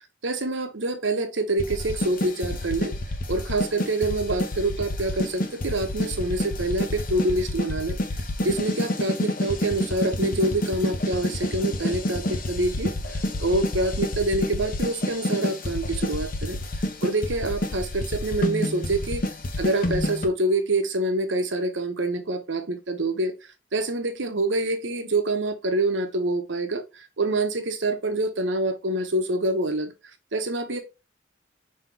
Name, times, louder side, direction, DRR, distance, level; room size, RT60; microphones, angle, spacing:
voice 1, 0.2-2.9 3.3-8.0 8.4-16.6 17.0-19.3 19.6-23.3 23.7-29.9 30.3-30.8, right 2 dB, 80° right, 1.0 m, -26 dB
sound 1, 1.6-20.3, left 1 dB, 50° left, 0.8 m, -29 dB
5.5 x 2.9 x 3.3 m
head